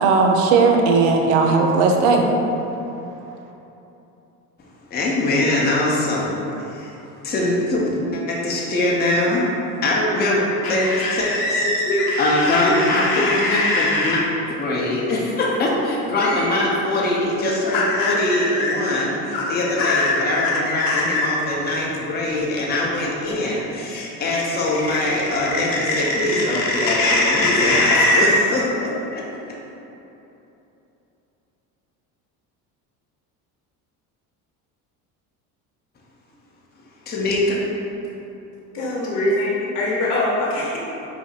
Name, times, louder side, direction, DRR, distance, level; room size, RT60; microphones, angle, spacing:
voice 1, 0.0-2.2, right 4 dB, 70° right, 2 dB, 0.6 m, -16 dB
voice 2, 4.6-6.9 7.2-9.5 9.8-11.6 12.2-14.2 14.4-29.3 37.1-37.6, left 1 dB, 20° left, -4 dB, 0.7 m, -22 dB
sound 1, 10.6-14.2 16.2-16.5 17.7-18.7 19.3-21.3 24.3-28.3, left 2 dB, 50° left, 0.8 m, -22 dB
voice 3, 11.6-12.1 12.6-12.8 13.1-13.2 38.7-40.8, left 1 dB, 90° left, -4 dB, 0.8 m, -23 dB
4.8 x 2.9 x 2.4 m, 3.0 s
hypercardioid pair, 75°, 45 cm